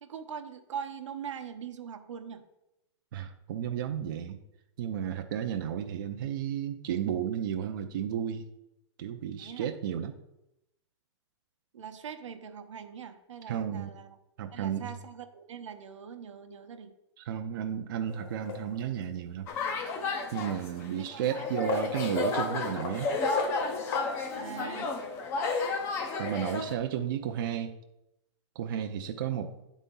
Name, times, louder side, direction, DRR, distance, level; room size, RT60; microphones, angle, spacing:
voice 1, 0.0-2.4 9.4-9.7 11.7-14.2 14.5-16.9 21.0-21.5 24.3-24.9, right 7 dB, 85° right, 7 dB, 0.8 m, -42 dB
voice 2, 3.1-4.4 4.8-8.5 9.0-10.1 13.5-13.9 14.4-15.0 17.2-19.5 20.3-23.1 26.2-27.7 28.6-29.5, right 9 dB, 45° right, 5 dB, 0.4 m, -33 dB
sound 1, 18.1-19.1 20.1-20.2 21.2-25.0, left 5 dB, 50° left, 1.2 m, -37 dB
sound 2, 19.5-26.8, left 3 dB, 15° left, 0.4 m, -32 dB
9.1 x 4.1 x 3.7 m, 0.88 s
hypercardioid pair, 165°, 15 cm